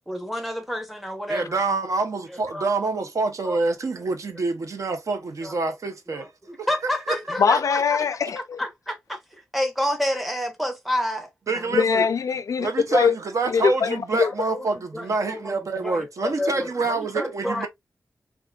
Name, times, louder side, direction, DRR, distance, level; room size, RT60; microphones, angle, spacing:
voice 1, 0.1-1.5 2.5-2.7 3.4-3.6 5.4-5.6 6.1-8.0 8.6-11.7 14.2-15.5 15.8-17.7, left 1 dB, ahead, 0.8 m, -29 dB
voice 2, 1.3-6.3 6.6-6.7 7.1-7.2 7.5-7.6 11.5-12.1 12.6-17.7, right 3 dB, 65° right, 0.8 m, -26 dB
voice 3, 7.4-8.6 11.7-13.2 13.5-14.3, left 6 dB, 65° left, 0.3 m, -22 dB
3.6 x 2.4 x 2.3 m
wide cardioid pair, 125°, 6 cm